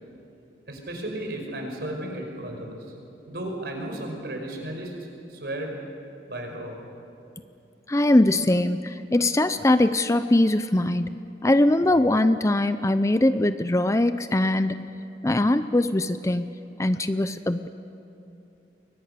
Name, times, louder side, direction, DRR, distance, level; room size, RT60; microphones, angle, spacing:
voice 1, 0.7-2.9 3.3-4.9 5.3-5.8 6.3-6.8, right 1 dB, 60° right, 2 dB, 5.3 m, -34 dB
voice 2, 7.9-15.0 15.2-17.7, left 1 dB, 15° left, 11 dB, 0.5 m, -22 dB
29.5 x 23.0 x 6.7 m, 2.8 s
head